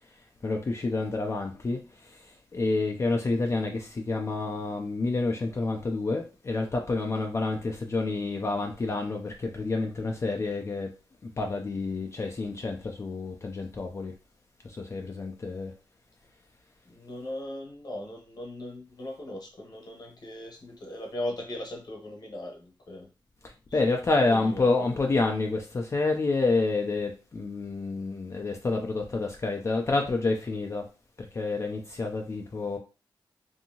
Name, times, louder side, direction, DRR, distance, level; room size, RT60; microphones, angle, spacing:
voice 1, 0.4-10.9 11.2-14.1 14.6-15.7 23.4-30.9 31.2-32.8, left 3 dB, 35° left, 0.4 m, -29 dB
voice 2, 16.8-23.1 23.7-23.8 24.3-24.7 25.1-25.2, left 1 dB, 50° left, 1.0 m, -38 dB
2.7 x 2.7 x 2.7 m
wide cardioid pair, 110°, 9 cm